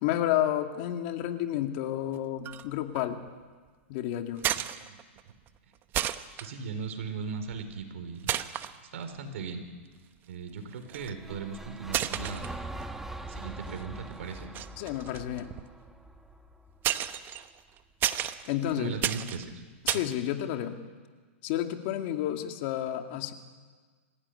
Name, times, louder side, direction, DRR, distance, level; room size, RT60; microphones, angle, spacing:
voice 1, 0.0-3.2 3.9-4.4 6.4-6.5 14.8-15.5 18.1-19.0 19.8-20.8 21.4-23.3, left 12 dB, 50° left, 5 dB, 2.2 m, -31 dB
sound 1, 2.4-2.7 2.9-3.3 4.4-5.2 5.5-5.6 5.9-6.5 7.5-7.8 8.3-8.7 9.4-9.5 10.7-11.2 11.8-13.1 13.4-13.8 14.3-16.3 16.8-20.1, right 12 dB, 30° right, 1.0 m, -32 dB
voice 2, 6.4-8.3 8.9-9.6 10.3-12.5 13.3-14.5 18.6-19.6, right 5 dB, 70° right, 7 dB, 4.6 m, -38 dB
sound 2, 10.9-17.1, right 1 dB, 5° right, 1.3 m, -43 dB
26.0 x 15.5 x 10.0 m, 1.5 s
hypercardioid pair, 140°, 7 cm